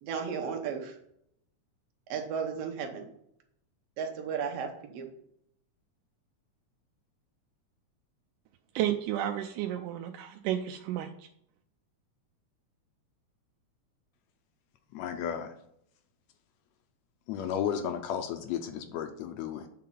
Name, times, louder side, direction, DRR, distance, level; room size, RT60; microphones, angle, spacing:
voice 1, 0.0-1.0 2.1-3.1 4.0-5.1, right 6 dB, 60° right, 3 dB, 1.9 m, -34 dB
voice 2, 8.8-11.1, right 12 dB, 85° right, 5 dB, 2.1 m, -32 dB
voice 3, 14.9-15.5 17.3-19.7, left 8 dB, 75° left, 7 dB, 1.7 m, -33 dB
8.3 x 3.8 x 5.7 m, 0.73 s
omnidirectional pair, 3.7 m